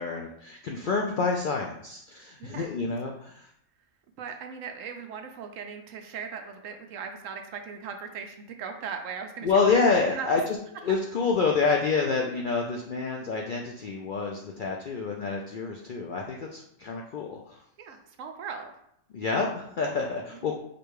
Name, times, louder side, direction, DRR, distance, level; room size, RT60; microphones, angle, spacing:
voice 1, 0.0-3.5 9.4-10.6 10.8-17.6 19.1-20.5, left 4 dB, 70° left, 0 dB, 0.4 m, -28 dB
voice 2, 4.2-10.4 17.8-18.7 20.3-20.5, right 6 dB, 75° right, 5 dB, 1.0 m, -39 dB
4.9 x 2.3 x 4.6 m, 0.74 s
omnidirectional pair, 1.4 m